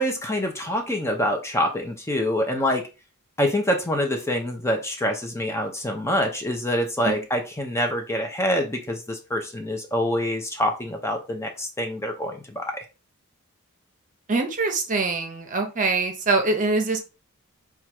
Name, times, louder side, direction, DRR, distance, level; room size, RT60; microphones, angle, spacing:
voice 1, 0.0-2.8 3.4-12.8, equal, 10° left, 3 dB, 0.7 m, -26 dB
voice 2, 14.3-17.0, right 3 dB, 35° right, 5 dB, 0.8 m, -24 dB
4.4 x 2.4 x 4.5 m, 0.30 s
head